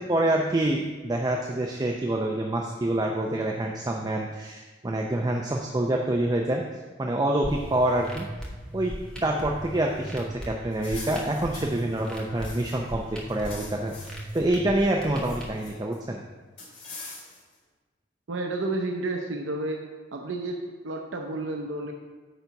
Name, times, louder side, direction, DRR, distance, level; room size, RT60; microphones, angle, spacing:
voice 1, 0.0-6.6 7.0-8.3 8.7-16.2, right 1 dB, 20° right, 1 dB, 0.5 m, -27 dB
sound 1, 7.4-15.4, equal, 5° left, 1.3 m, -38 dB
sound 2, 10.7-12.9 13.2-14.4 14.8-16.0 16.6-17.5, left 3 dB, 45° left, 2.6 m, -44 dB
voice 2, 18.3-19.8 20.1-21.9, right 2 dB, 85° right, 2 dB, 0.7 m, -31 dB
9.1 x 4.0 x 5.7 m, 1.3 s
head